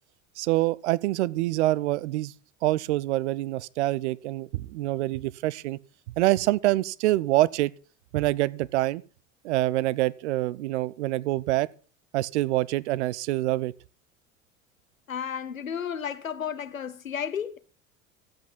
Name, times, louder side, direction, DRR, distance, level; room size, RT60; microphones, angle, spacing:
voice 1, 0.4-2.3 2.6-5.8 6.2-7.7 8.1-9.0 9.4-11.7 12.1-13.7, right 17 dB, 60° right, 0.6 m, -25 dB
voice 2, 15.1-17.6, left 8 dB, 80° left, 0.8 m, -32 dB
13.5 x 8.3 x 5.3 m
figure-of-eight pair, 70°, 40 cm